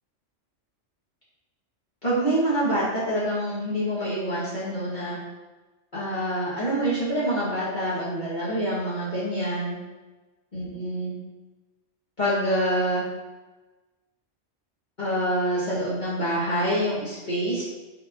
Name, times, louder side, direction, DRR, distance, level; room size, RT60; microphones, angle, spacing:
voice 1, 2.0-5.2 5.9-9.8 10.5-11.2 12.2-13.0 15.0-17.6, right 1 dB, 40° left, -10 dB, 1.8 m, -26 dB
6.4 x 4.0 x 4.3 m, 1.2 s
omnidirectional pair, 1.3 m